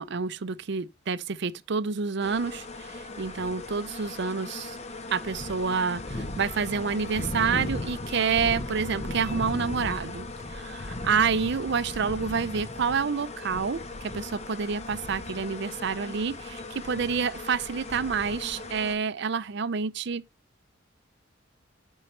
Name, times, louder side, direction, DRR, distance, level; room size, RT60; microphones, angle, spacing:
voice 1, 0.0-4.8 5.1-10.3 10.5-20.2, right 5 dB, 60° right, 0.5 m, -28 dB
sound 1, 2.2-18.9, left 2 dB, 35° left, 0.9 m, -37 dB
10.0 x 5.4 x 3.2 m
head